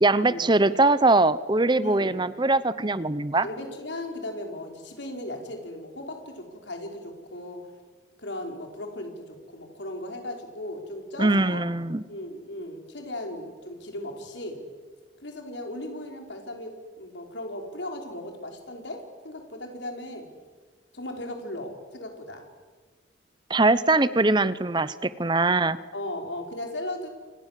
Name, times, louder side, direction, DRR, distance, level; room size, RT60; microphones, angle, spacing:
voice 1, 0.0-3.5 11.2-12.0 23.5-25.8, right 2 dB, 25° right, 15 dB, 0.8 m, -22 dB
voice 2, 1.8-2.1 3.4-7.7 8.2-11.6 12.1-14.6 15.2-20.3 20.9-22.5 25.9-27.1, left 1 dB, 75° left, 3 dB, 5.0 m, -37 dB
29.0 x 27.5 x 7.6 m, 1.4 s
head